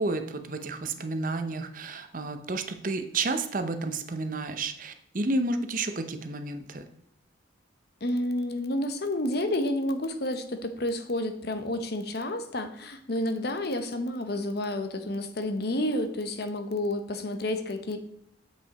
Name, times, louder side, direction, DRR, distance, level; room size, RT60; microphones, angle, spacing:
voice 1, 0.0-6.8, right 2 dB, 45° right, 8 dB, 0.6 m, -31 dB
voice 2, 8.0-18.0, left 1 dB, 55° left, 7 dB, 0.8 m, -30 dB
7.5 x 5.7 x 4.1 m, 0.75 s
head